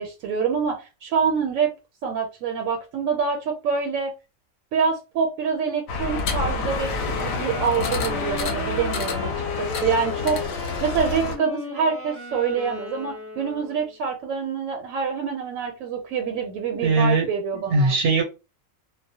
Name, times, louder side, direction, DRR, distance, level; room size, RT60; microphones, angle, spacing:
voice 1, 0.0-1.7 2.0-4.1 4.7-10.4 10.8-18.0, right 6 dB, 85° right, 3 dB, 1.0 m, -26 dB
sound 1, 5.9-11.4, left 4 dB, 65° left, 0.8 m, -28 dB
Wind instrument woodwind instrument, 6.8-14.0, left 1 dB, 15° left, 0.6 m, -35 dB
voice 2, 16.8-17.3 17.5-18.2, right 3 dB, 60° right, 2 dB, 0.7 m, -20 dB
2.3 x 2.0 x 2.7 m, 0.28 s
omnidirectional pair, 1.4 m